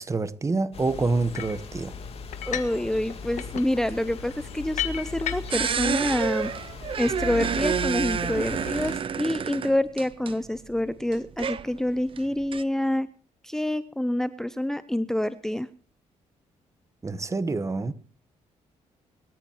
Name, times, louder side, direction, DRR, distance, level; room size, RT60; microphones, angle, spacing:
voice 1, 0.0-1.9 17.0-17.9, right 3 dB, 25° right, 1.2 m, -27 dB
sound 1, 0.7-9.0, left 5 dB, 55° left, 3.4 m, -38 dB
sound 2, 1.3-1.6 2.3-2.8 3.1-5.7, left 11 dB, 75° left, 1.6 m, -34 dB
voice 2, 2.5-6.5 7.0-13.1 13.4-15.7, left 1 dB, 5° left, 0.6 m, -27 dB
sound 3, 5.5-10.4 10.8-10.9 11.1-12.6, right 7 dB, 45° right, 0.9 m, -29 dB
23.0 x 13.5 x 3.0 m
cardioid pair, 105°, 13 cm